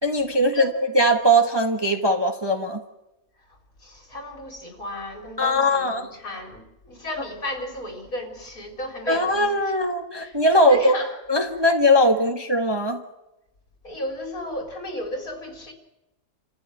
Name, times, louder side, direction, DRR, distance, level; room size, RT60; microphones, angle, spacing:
voice 1, 0.0-2.8 5.4-6.1 9.1-10.9 11.3-13.0, equal, 15° right, 3 dB, 1.4 m, -20 dB
voice 2, 3.8-9.5 10.2-11.1 13.8-15.7, left 1 dB, 60° left, 2 dB, 4.4 m, -34 dB
27.5 x 15.0 x 9.1 m, 0.96 s
omnidirectional pair, 1.7 m